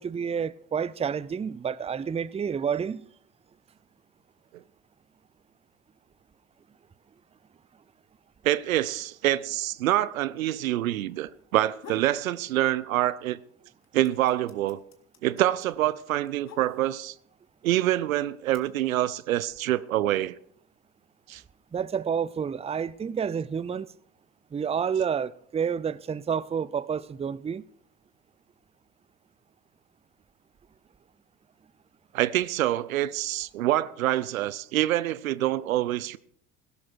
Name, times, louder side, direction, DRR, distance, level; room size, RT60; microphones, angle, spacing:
voice 1, 0.0-3.0 21.7-23.9 24.5-27.6, right 7 dB, 15° right, 0.6 m, -29 dB
voice 2, 8.4-13.4 13.9-14.8 15.2-17.1 17.6-20.3 21.3-21.4 32.1-36.2, right 14 dB, 80° right, 0.7 m, -26 dB
sound 1, 11.8-12.2 12.6-13.3 13.6-17.2 17.9-18.6, left 7 dB, 40° left, 2.4 m, -49 dB
16.5 x 12.0 x 4.6 m
hypercardioid pair, 65°, 41 cm